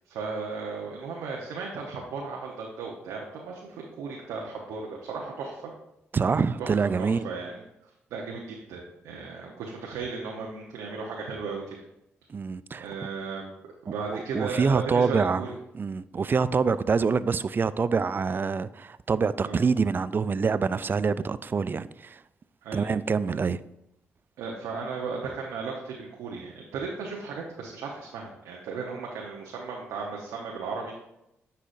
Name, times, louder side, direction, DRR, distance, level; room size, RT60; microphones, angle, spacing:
voice 1, 0.1-5.7 6.6-6.7 7.0-7.6 8.1-11.8 12.7-13.5 13.8-15.5 19.4-19.6 22.6-22.9 24.4-30.9, right 4 dB, 85° right, 1.0 m, -35 dB
voice 2, 6.1-7.3 12.3-12.9 14.1-15.5 15.7-22.2 22.7-23.6, right 5 dB, 40° right, 0.4 m, -26 dB
10.0 x 5.7 x 2.6 m
supercardioid pair, 55°, 5 cm